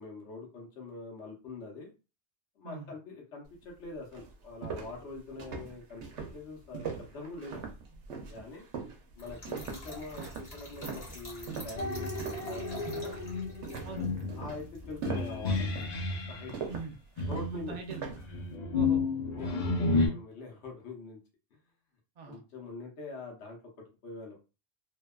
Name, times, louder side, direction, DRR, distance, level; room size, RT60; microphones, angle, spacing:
voice 1, 0.0-1.9 2.6-6.0 6.3-7.6 8.2-8.7 9.2-13.2 14.4-15.7 16.3-16.5 17.2-17.8 19.3-21.2 22.3-23.6 24.0-24.4, left 3 dB, 80° left, -1 dB, 1.1 m, -44 dB
sound 1, 3.6-3.7 4.1-12.6 12.9-13.3 13.6-18.3, right 6 dB, 85° right, 0.9 m, -41 dB
Trickle dribble / Fill (with liquid), 9.2-15.9, equal, 35° left, 0.9 m, -48 dB
sound 2, 11.8-16.5 17.2-20.1, left 3 dB, 55° left, 0.5 m, -32 dB
voice 2, 13.8-14.2 16.7-16.9 17.5-18.2 18.7-19.3 22.2-22.4, right 3 dB, 50° right, 3 dB, 0.5 m, -42 dB
2.7 x 2.2 x 2.2 m, 0.31 s
omnidirectional pair, 1.2 m